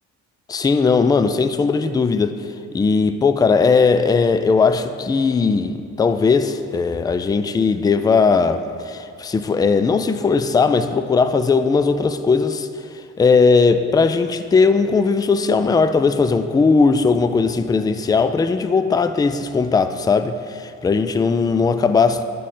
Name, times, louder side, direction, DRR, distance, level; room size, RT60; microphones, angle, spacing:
voice 1, 0.5-2.4 2.7-12.7 13.2-22.2, left 4 dB, 15° left, 10 dB, 0.3 m, -18 dB
10.5 x 5.0 x 4.2 m, 2.4 s
cardioid pair, 90°, 30 cm